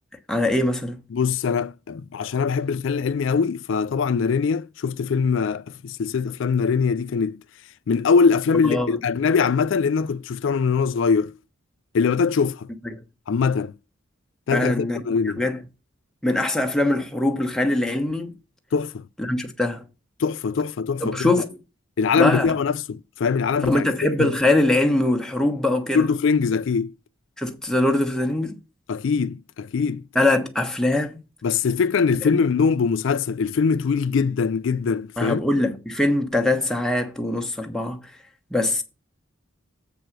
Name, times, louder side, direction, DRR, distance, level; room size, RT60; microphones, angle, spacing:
voice 1, 0.3-1.0 8.6-9.0 12.8-13.0 14.5-15.0 15.4-15.6 16.2-18.3 19.2-19.8 21.0-21.5 22.2-22.5 23.7-26.0 27.4-28.6 30.1-31.2 35.2-38.1 38.5-38.8, left 1 dB, 5° left, 1.2 m, -22 dB
voice 2, 1.1-7.4 7.9-11.3 11.9-12.7 13.3-13.7 14.5-15.4 18.7-19.0 20.2-21.5 22.0-23.9 24.2-24.3 25.9-26.9 28.9-30.0 31.4-35.4, left 5 dB, 65° left, 0.4 m, -22 dB
7.9 x 4.6 x 6.0 m
head